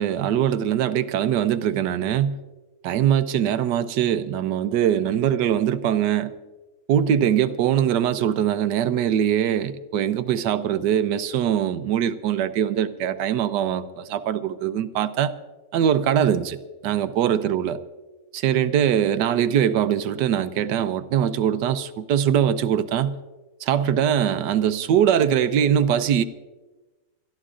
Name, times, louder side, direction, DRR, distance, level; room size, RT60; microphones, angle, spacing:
voice 1, 0.0-2.4 2.8-6.3 6.9-15.3 15.7-16.6 16.8-17.8 18.3-23.2 23.6-26.2, right 9 dB, 80° right, 1.3 m, -22 dB
29.5 x 13.0 x 2.5 m
omnidirectional pair, 1.9 m